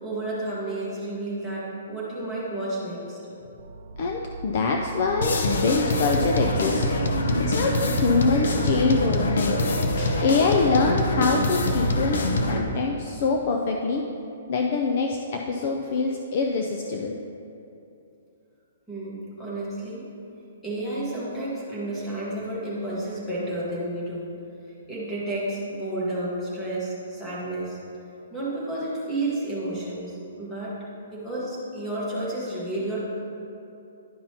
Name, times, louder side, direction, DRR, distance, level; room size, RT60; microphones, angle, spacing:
voice 1, 0.0-3.2 18.9-20.1 20.6-24.3 24.9-27.8 28.3-30.8 31.1-33.0, right 1 dB, 5° left, -8 dB, 1.3 m, -31 dB
sound 1, 3.6-9.9, right 4 dB, 75° right, 0.5 m, -37 dB
voice 2, 4.0-6.9 7.4-9.6 10.0-14.0 14.5-17.2, left 4 dB, 35° left, 2 dB, 0.4 m, -24 dB
sound 2, 5.2-12.6, left 1 dB, 75° left, 0.7 m, -24 dB
11.0 x 5.4 x 2.9 m, 2.7 s
hypercardioid pair, 175°, 0 cm